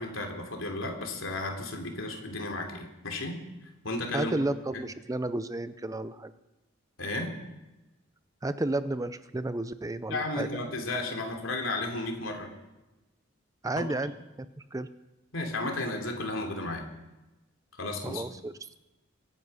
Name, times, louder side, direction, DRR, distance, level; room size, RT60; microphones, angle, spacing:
voice 1, 0.0-3.4 3.8-4.4 4.7-4.8 7.0-7.3 10.1-12.5 13.8-13.9 15.3-16.9 17.8-18.2, left 2 dB, 75° left, 3 dB, 3.2 m, -33 dB
voice 2, 4.1-6.3 8.4-10.5 13.6-14.1 14.4-14.5 14.7-14.9 18.0-18.5, right 2 dB, 15° right, 13 dB, 0.5 m, -32 dB
25.0 x 9.9 x 5.6 m, 1.0 s
head